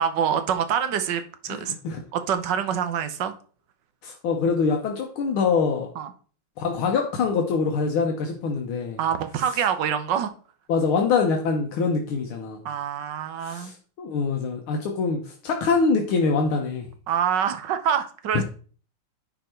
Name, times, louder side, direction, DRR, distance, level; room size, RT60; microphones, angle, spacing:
voice 1, 0.0-1.7 2.1-3.3 5.9-6.1 9.0-10.3 12.6-13.7 17.1-18.4, right 8 dB, 60° right, 9 dB, 1.5 m, -25 dB
voice 2, 1.5-2.0 4.0-5.9 6.6-9.0 10.7-12.6 13.4-16.9 18.3-18.4, left 4 dB, 80° left, 2 dB, 1.9 m, -24 dB
10.5 x 4.9 x 4.4 m, 0.41 s
omnidirectional pair, 2.3 m